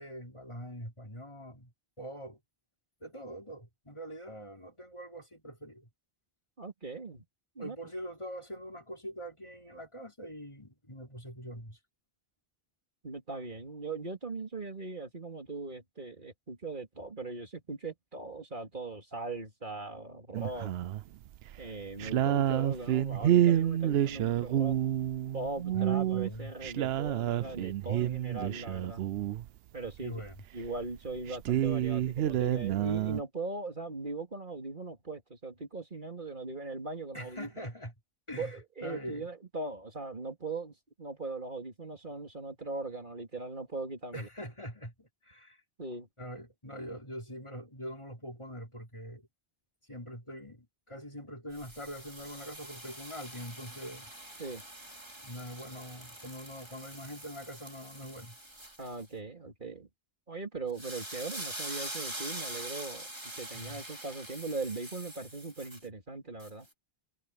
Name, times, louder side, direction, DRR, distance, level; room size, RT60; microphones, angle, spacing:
voice 1, 0.0-1.7 2.0-2.4 3.0-5.9 7.6-11.8 25.7-26.5 30.0-30.4 37.1-37.9 38.3-39.3 44.1-45.6 46.2-49.3 49.9-54.1 55.2-58.4 63.5-63.8, equal, 30° left, 3.7 m, -43 dB
voice 2, 6.6-7.2 7.6-7.8 13.0-20.7 21.6-24.8 25.3-29.0 29.7-30.2 30.5-37.7 38.4-44.3 45.8-46.1 54.4-54.6 58.8-59.9 60.3-63.1 63.3-66.7, right 3 dB, 50° right, 3.0 m, -40 dB
sound 1, 20.3-21.0 21.4-21.6 22.0-29.5 30.3-30.4 30.6-30.7 31.0-33.2, right 11 dB, 80° right, 0.8 m, -29 dB
sound 2, 51.5-59.0 60.7-65.9 66.4-66.5, right 1 dB, 25° right, 3.4 m, -44 dB
omnidirectional pair, 1.0 m